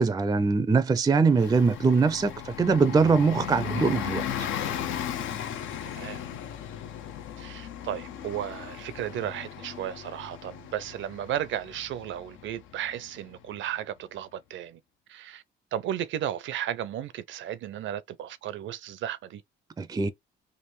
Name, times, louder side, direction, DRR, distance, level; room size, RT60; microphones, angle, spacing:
voice 1, 0.0-4.2 19.8-20.1, right 4 dB, 20° right, 0.4 m, -22 dB
Bus, 1.3-13.6, left 9 dB, 80° left, 0.6 m, -36 dB
voice 2, 7.4-14.8 15.1-15.4 15.7-19.4, right 11 dB, 70° right, 0.5 m, -34 dB
3.3 x 2.5 x 3.1 m
cardioid pair, 90°, 20 cm